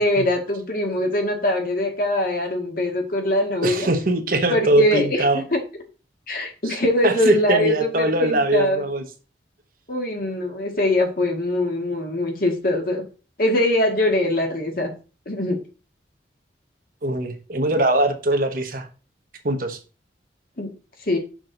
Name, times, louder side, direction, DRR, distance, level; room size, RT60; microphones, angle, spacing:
voice 1, 0.0-3.9 4.5-5.6 6.3-8.8 9.9-13.0 13.4-14.9 15.3-15.6 20.6-20.7 21.1-21.2, left 1 dB, 50° left, 1.8 m, -22 dB
voice 2, 3.6-5.4 6.6-6.8 7.0-9.0 17.0-18.9 19.4-19.8, right 1 dB, 50° right, 1.1 m, -21 dB
6.3 x 6.2 x 3.9 m
head